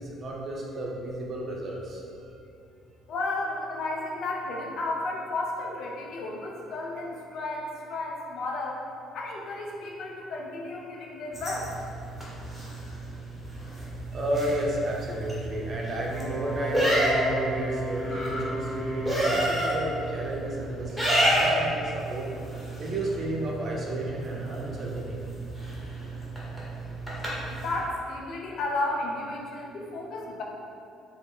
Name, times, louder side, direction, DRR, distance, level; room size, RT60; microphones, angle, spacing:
voice 1, 0.0-2.3 14.1-22.3 22.8-25.3, right 1 dB, 50° right, -2 dB, 0.5 m, -32 dB
voice 2, 3.1-8.8 9.1-11.7 27.5-30.4, left 2 dB, 65° left, -1 dB, 0.4 m, -33 dB
sound 1, 11.3-27.8, right 1 dB, 5° right, 0.9 m, -30 dB
Wind instrument woodwind instrument, 16.0-19.7, equal, 20° left, 1.1 m, -36 dB
sound 2, 17.9-21.4 21.8-22.1, left 1 dB, 85° left, 0.8 m, -42 dB
2.0 x 2.0 x 3.5 m, 2.6 s
hypercardioid pair, 60°, 0 cm